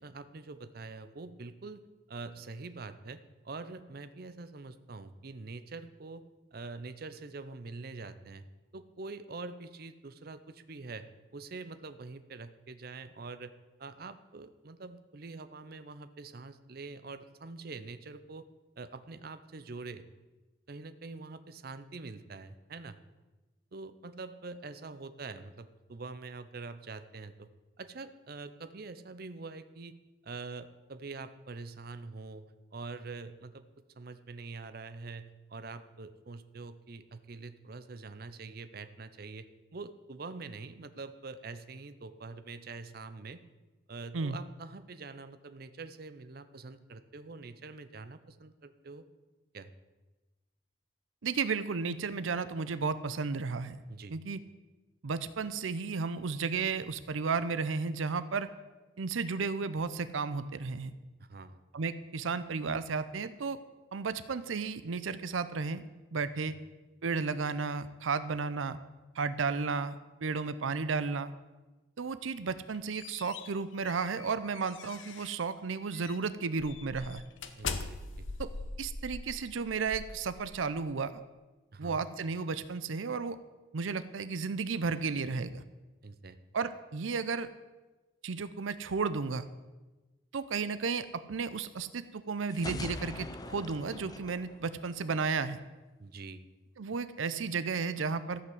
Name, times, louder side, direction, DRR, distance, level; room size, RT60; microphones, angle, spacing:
voice 1, 0.0-1.8 2.1-6.2 6.5-8.4 8.7-13.5 13.8-18.5 18.8-20.1 20.7-23.0 23.7-27.5 27.8-30.0 30.2-33.6 34.0-43.4 43.9-49.0 49.5-49.7 53.9-54.2 61.2-61.6 66.5-66.6 77.5-78.3 81.7-82.0 86.0-86.4 96.0-96.4, right 3 dB, 50° right, 12 dB, 0.6 m, -45 dB
voice 2, 51.2-53.8 54.1-54.4 55.0-58.5 59.0-60.9 61.7-63.6 63.9-65.8 66.1-66.5 67.0-68.8 69.1-70.0 70.2-71.3 72.0-77.2 78.4-78.5 78.8-81.2 81.8-83.4 83.7-85.6 86.5-87.5 88.2-89.4 90.3-95.6 96.8-98.4, right 4 dB, 90° right, 13 dB, 0.6 m, -33 dB
sound 1, 72.5-75.5 75.9-76.2 76.6-80.8, left 4 dB, 80° left, 0.9 m, -42 dB
sound 2, 92.5-95.4, left 2 dB, 20° left, 0.5 m, -42 dB
14.0 x 5.9 x 7.7 m, 1.2 s
head